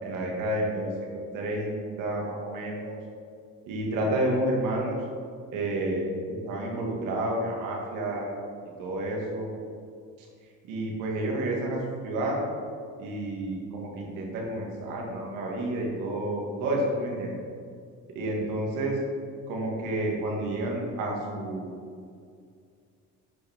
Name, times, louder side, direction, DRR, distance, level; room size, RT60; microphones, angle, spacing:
voice 1, 0.0-1.1 1.3-3.0 3.7-5.0 5.5-8.3 8.8-9.5 10.7-12.4 13.0-17.3 18.1-18.9 19.5-21.7, right 1 dB, 80° right, -2 dB, 2.2 m, -30 dB
10.0 x 6.0 x 3.7 m, 2.3 s
supercardioid pair, 95°, 32 cm